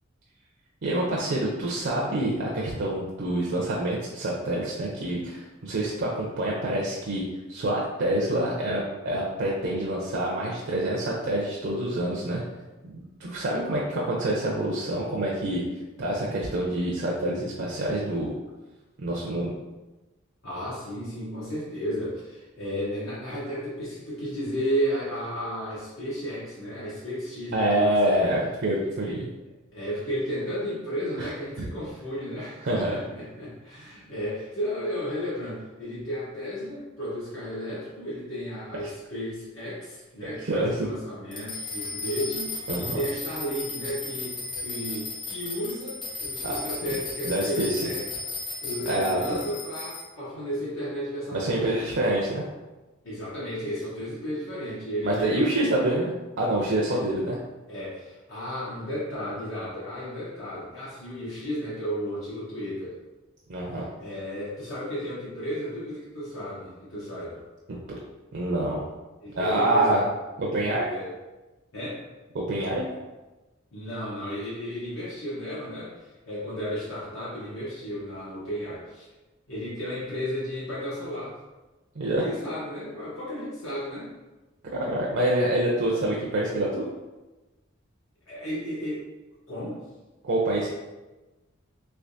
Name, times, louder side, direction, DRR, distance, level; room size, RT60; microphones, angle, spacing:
voice 1, 0.8-12.4 12.8-15.6 16.0-18.3 19.0-19.5 27.5-29.2 31.2-31.3 31.6-31.7 32.6-32.9 40.4-40.9 42.7-43.0 46.4-46.6 47.2-47.9 48.9-49.4 51.3-52.5 55.0-57.4 63.5-63.8 68.3-68.8 69.3-70.0 70.5-70.9 72.3-72.9 82.0-82.2 84.7-86.9 90.2-90.7, right 1 dB, 60° right, -4 dB, 0.5 m, -26 dB
voice 2, 20.4-28.2 28.6-28.8 29.0-29.2 29.7-48.0 48.6-51.9 53.0-55.7 56.9-57.0 57.7-62.9 64.0-67.4 69.2-70.0 70.9-71.1 71.7-72.0 73.7-79.1 79.5-81.4 82.1-84.1 88.3-89.0 89.5-89.8, equal, 75° left, -9 dB, 1.0 m, -33 dB
sound 1, 41.3-50.0, left 3 dB, 25° left, 0.5 m, -35 dB
3.3 x 3.0 x 2.6 m, 1.1 s
head